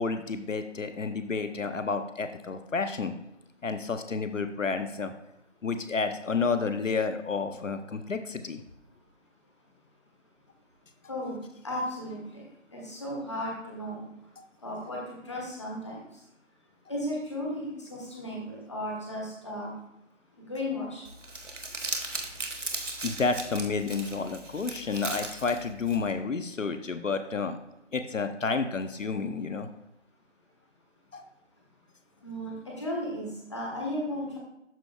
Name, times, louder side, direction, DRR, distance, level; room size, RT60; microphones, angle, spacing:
voice 1, 0.0-3.1 3.6-5.1 5.6-8.6 14.4-14.5 23.0-27.6 27.9-29.7 31.1-31.2, left 4 dB, 80° left, 9 dB, 0.8 m, -30 dB
voice 2, 11.6-12.4 12.7-14.0 14.6-16.0 16.9-19.7 20.4-21.0 32.2-34.4, left 1 dB, 25° left, -2 dB, 1.2 m, -35 dB
Crumpling crinkling, 21.0-26.1, right 2 dB, 70° right, 1.4 m, -37 dB
12.0 x 4.6 x 2.3 m, 0.88 s
figure-of-eight pair, 165°, 38 cm